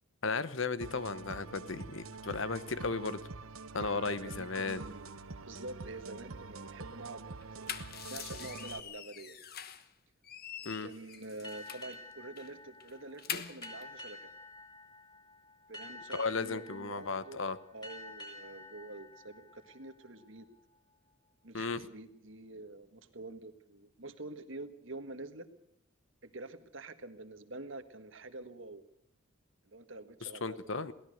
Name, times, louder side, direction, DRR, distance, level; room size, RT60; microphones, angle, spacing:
voice 1, 0.2-3.2 3.7-4.8 10.6-10.9 16.1-17.6 21.5-21.8 30.2-30.9, left 4 dB, 65° left, 14 dB, 1.1 m, -35 dB
sound 1, 0.8-8.8, right 3 dB, 85° right, 1.1 m, -46 dB
voice 2, 3.8-5.2 5.5-7.7 8.0-9.4 10.6-14.3 15.7-20.5 21.4-25.5 26.2-28.8 29.7-30.9, right 2 dB, 60° right, 10 dB, 1.6 m, -47 dB
sound 2, 7.4-9.9 10.2-12.0 12.4-12.5 12.8-13.8, left 8 dB, 45° left, 1.3 m, -43 dB
sound 3, 11.4-20.6, left 1 dB, 20° left, 5.2 m, -50 dB
23.0 x 17.5 x 6.6 m, 0.70 s
head